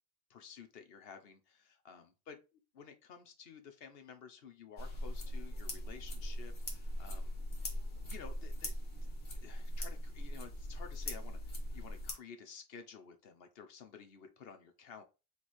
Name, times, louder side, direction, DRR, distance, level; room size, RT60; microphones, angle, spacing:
voice 1, 0.3-2.4 2.8-7.8 8.1-8.7 9.0-15.0, left 6 dB, 65° left, 6 dB, 1.0 m, -53 dB
sound 1, 4.8-12.1, left 1 dB, 50° left, 1.3 m, -40 dB
3.5 x 3.2 x 4.2 m, 0.29 s
omnidirectional pair, 1.1 m